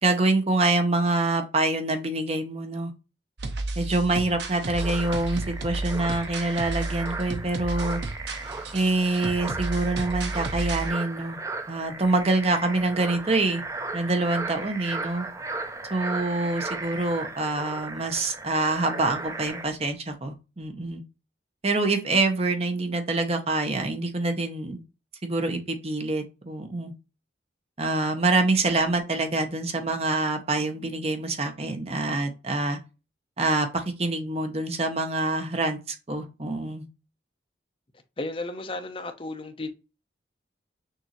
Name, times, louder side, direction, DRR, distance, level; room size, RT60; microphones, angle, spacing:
voice 1, 0.0-2.9 3.8-8.0 8.7-11.4 11.7-13.6 13.9-15.3 15.9-21.0 21.6-24.8 25.2-26.9 27.8-32.8 33.4-36.9, right 2 dB, 35° right, 0.9 m, -26 dB
sound 1, 3.4-10.9, right 2 dB, 70° right, 0.8 m, -32 dB
sound 2, 4.8-19.6, right 3 dB, 15° right, 0.4 m, -36 dB
voice 2, 38.2-39.7, left 2 dB, 30° left, 0.6 m, -33 dB
6.4 x 2.7 x 3.0 m
head